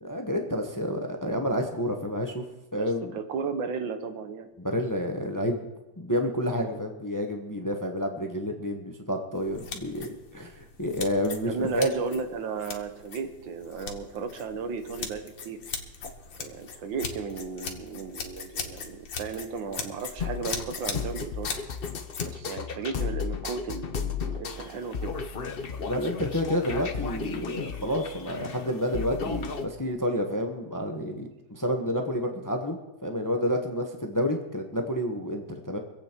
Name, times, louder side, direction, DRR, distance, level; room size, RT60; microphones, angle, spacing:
voice 1, 0.0-2.4 2.7-3.1 4.6-5.7 6.0-11.9 25.8-35.8, equal, 15° left, 4 dB, 0.9 m, -29 dB
voice 2, 2.8-4.5 11.4-15.6 16.4-21.5 22.2-25.1, right 5 dB, 85° right, 8 dB, 1.8 m, -34 dB
sound 1, 9.3-22.3, left 5 dB, 85° left, 2.1 m, -40 dB
sound 2, 20.2-29.7, left 6 dB, 45° left, 0.8 m, -34 dB
25.0 x 8.4 x 4.5 m, 1.0 s
omnidirectional pair, 2.0 m